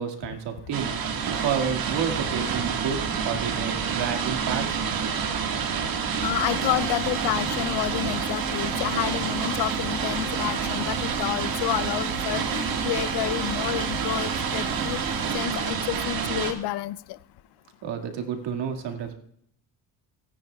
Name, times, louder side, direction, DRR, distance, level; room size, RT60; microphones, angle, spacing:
voice 1, 0.0-4.8 17.8-19.1, right 7 dB, 70° right, 2.1 m, -30 dB
sound 1, 0.7-16.5, right 6 dB, 50° right, 1.7 m, -28 dB
voice 2, 6.2-15.0 15.3-17.0, left 14 dB, 65° left, 0.6 m, -29 dB
sound 2, 6.4-15.4, right 2 dB, 5° right, 0.6 m, -37 dB
18.0 x 10.0 x 2.3 m
cardioid pair, 95°, 43 cm